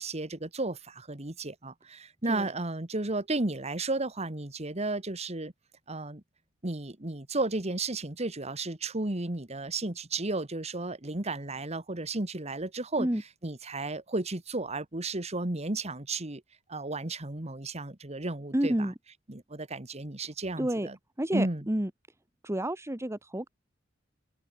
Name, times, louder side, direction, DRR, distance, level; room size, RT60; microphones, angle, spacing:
voice 1, 0.0-5.5 5.9-6.2 6.6-13.1 13.4-16.4 16.7-18.9 19.3-21.0 21.3-21.7, right 2 dB, 35° right, 1.8 m, -33 dB
voice 2, 18.5-18.9 20.6-20.9 21.2-21.9 22.4-23.5, right 1 dB, 15° right, 1.3 m, -29 dB
head